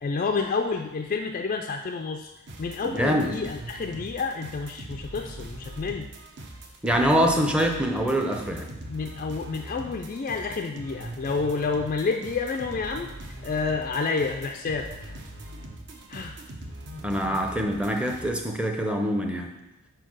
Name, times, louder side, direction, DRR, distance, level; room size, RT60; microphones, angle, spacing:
voice 1, 0.0-2.3 2.6-6.1 8.9-13.1 13.4-15.1 16.1-16.4, left 4 dB, 35° left, 3 dB, 0.3 m, -29 dB
sound 1, 2.5-18.3, right 1 dB, 50° right, 0.9 m, -41 dB
voice 2, 2.8-3.3 6.8-8.7 17.0-19.5, equal, 5° right, 2 dB, 0.6 m, -24 dB
5.0 x 4.6 x 6.1 m, 0.99 s
head